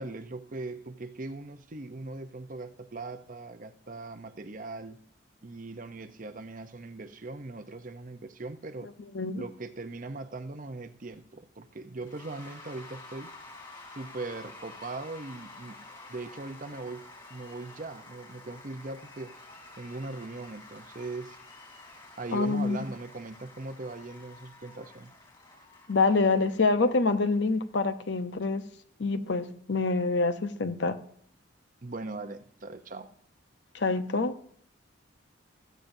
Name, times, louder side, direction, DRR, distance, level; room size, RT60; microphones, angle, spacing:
voice 1, 0.0-5.0 5.4-8.9 9.4-13.3 13.9-19.3 19.8-21.4 22.2-25.1 31.8-33.1, right 2 dB, 45° right, 9 dB, 0.7 m, -40 dB
Cheering / Applause / Crowd, 12.0-27.6, left 2 dB, 25° left, 3.9 m, -50 dB
voice 2, 22.3-22.8 25.9-28.6 29.0-31.0 33.7-34.3, left 3 dB, 65° left, 10 dB, 0.8 m, -26 dB
15.5 x 13.5 x 2.7 m, 0.65 s
head